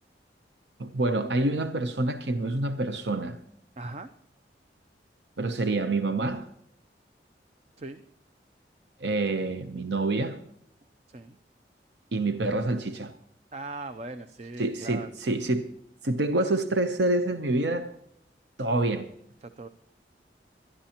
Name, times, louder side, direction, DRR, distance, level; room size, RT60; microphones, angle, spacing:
voice 1, 0.8-3.4 5.4-6.5 9.0-10.4 12.1-13.1 14.6-15.8 16.0-17.9 18.6-19.1, right 2 dB, 85° right, 0.8 m, -27 dB
voice 2, 3.8-4.1 7.8-8.0 11.1-11.4 13.5-15.1 19.4-19.7, right 3 dB, 40° right, 0.5 m, -39 dB
23.5 x 11.0 x 2.9 m
head